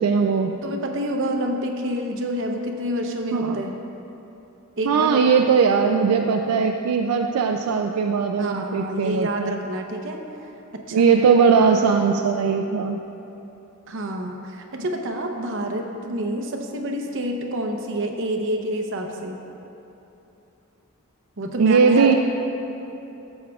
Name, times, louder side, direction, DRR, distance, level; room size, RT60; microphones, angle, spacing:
voice 1, 0.0-0.6 3.3-3.6 4.9-9.6 10.9-13.0 21.6-22.2, right 5 dB, 80° right, 3 dB, 0.4 m, -19 dB
voice 2, 0.6-3.7 4.8-5.4 8.4-10.2 10.7-11.0 13.9-19.4 21.4-22.2, equal, 60° right, 3 dB, 0.8 m, -28 dB
14.0 x 7.2 x 2.4 m, 3.0 s
head